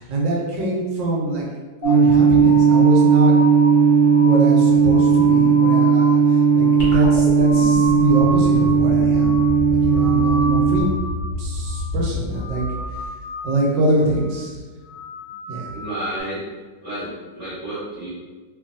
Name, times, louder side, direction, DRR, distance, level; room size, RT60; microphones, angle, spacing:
voice 1, 0.0-1.5 1.8-3.3 4.2-9.4 9.7-10.9 11.3-12.6 12.9-13.1 13.4-14.6 15.5-15.7, right 2 dB, 75° right, -3 dB, 1.3 m, -24 dB
sound 1, 1.8-8.8 9.1-9.6 9.8-11.3 11.6-12.0 12.3-13.8 14.1-14.5 14.8-16.2, left 1 dB, 75° left, 1.1 m, -32 dB
sound 2, 1.8-10.8, right 5 dB, 60° right, 0.5 m, -16 dB
sound 3, 6.8-13.3, equal, 55° left, 0.5 m, -29 dB
voice 2, 15.7-16.4 16.8-17.1 17.3-18.1, right 1 dB, 45° right, -13 dB, 1.0 m, -30 dB
2.9 x 2.5 x 2.5 m, 1.3 s
omnidirectional pair, 2.2 m